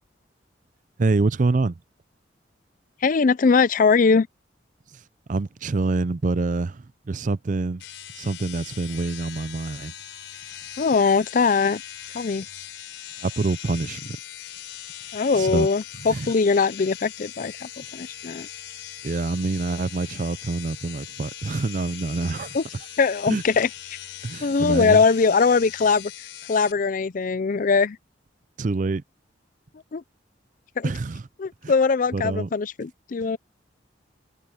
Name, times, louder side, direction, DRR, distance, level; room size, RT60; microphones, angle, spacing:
voice 1, 1.0-1.8 5.3-7.8 8.1-9.9 13.2-14.2 15.3-15.7 16.1-16.3 19.0-22.6 23.3-23.4 24.2-25.0 28.6-29.0 30.8-31.2 31.6-31.7 32.1-32.5, right 3 dB, 45° right, 0.5 m, -26 dB
voice 2, 3.0-4.3 10.8-11.8 12.1-12.5 15.1-18.5 22.5-22.6 23.0-23.7 24.4-26.1 26.5-28.0 29.9-30.0 30.8-30.9 31.4-33.4, left 5 dB, 45° left, 0.4 m, -21 dB
sound 1, 7.8-26.7, left 11 dB, 85° left, 4.2 m, -40 dB
head